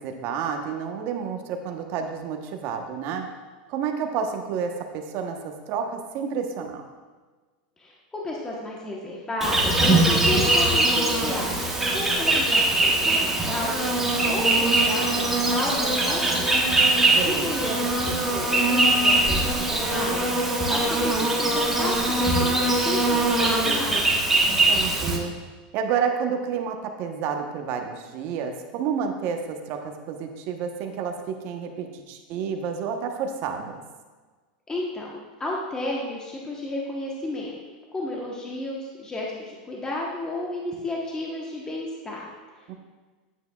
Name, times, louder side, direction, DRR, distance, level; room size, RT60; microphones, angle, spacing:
voice 1, 0.0-3.3 3.7-6.8 17.2-17.5 24.4-25.3 25.7-33.8 42.7-42.8, right 6 dB, 50° right, 4 dB, 1.0 m, -30 dB
voice 2, 7.8-13.9 14.3-16.7 17.2-20.3 20.7-24.1 34.7-37.5 37.9-42.3, left 2 dB, 15° left, -3 dB, 1.1 m, -32 dB
Insect, 9.4-25.2, right 2 dB, 5° right, 1.2 m, -22 dB
9.3 x 8.1 x 2.3 m, 1.4 s
supercardioid pair, 125°, 5 cm